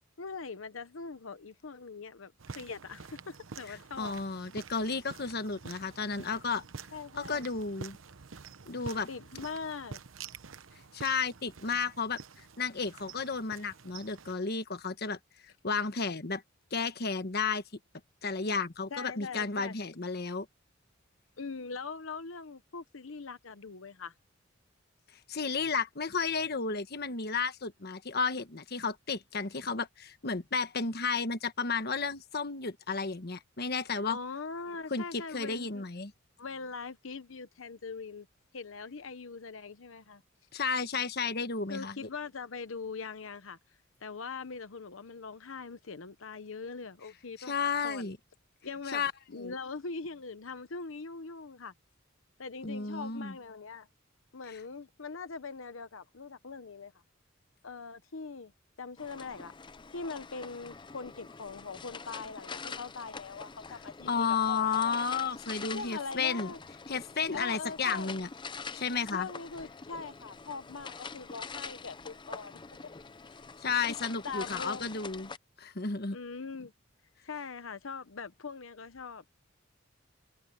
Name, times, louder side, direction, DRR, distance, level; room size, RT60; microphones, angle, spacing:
voice 1, 0.2-4.2 6.9-7.5 9.1-10.0 18.9-19.7 21.4-24.1 34.1-35.8 36.4-38.3 38.5-40.2 41.7-43.6 44.0-48.1 48.6-51.7 52.4-53.9 54.3-56.9 57.6-58.5 58.8-59.5 59.9-64.9 65.7-66.6 67.3-68.1 69.1-72.6 74.2-74.9 76.1-76.7 77.2-79.2, left 4 dB, 90° left, 0.9 m, -42 dB
sound 1, 2.4-14.3, right 5 dB, 85° right, 0.9 m, -48 dB
voice 2, 3.7-6.6 7.2-8.0 8.7-9.4 10.9-12.2 12.6-15.2 15.6-16.4 16.7-17.6 18.2-20.5 25.3-34.2 34.9-36.1 40.5-42.1 47.4-48.2 48.9-49.1 49.4-49.5 52.6-53.3 64.1-66.5 66.9-68.3 68.7-69.3 73.6-75.3 75.6-76.2, left 5 dB, 55° left, 1.3 m, -32 dB
sound 2, 59.0-75.4, left 5 dB, 25° left, 0.6 m, -45 dB
head